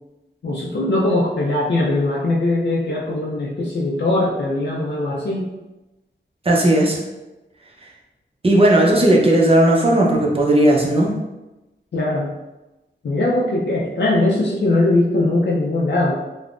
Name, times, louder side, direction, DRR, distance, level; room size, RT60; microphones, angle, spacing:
voice 1, 0.4-5.5 11.9-12.3 13.0-16.1, left 2 dB, 65° left, -4 dB, 0.4 m, -20 dB
voice 2, 6.4-7.0 8.4-11.2, right 1 dB, 30° right, -2 dB, 0.6 m, -15 dB
3.5 x 2.0 x 2.4 m, 1.0 s
wide cardioid pair, 115°, 19 cm